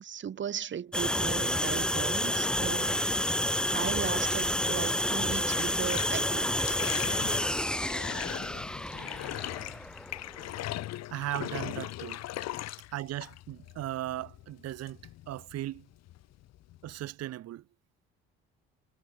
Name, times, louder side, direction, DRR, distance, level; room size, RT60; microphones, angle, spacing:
voice 1, 0.0-3.0 3.7-6.5, right 8 dB, 40° right, 1.6 m, -36 dB
sound 1, 0.9-10.7, left 1 dB, 5° left, 0.8 m, -30 dB
Bathtub (filling or washing), 5.4-17.1, left 15 dB, 60° left, 2.1 m, -40 dB
voice 2, 11.1-12.2 12.9-15.9 16.8-17.6, right 14 dB, 60° right, 2.1 m, -37 dB
hypercardioid pair, 60°, 29 cm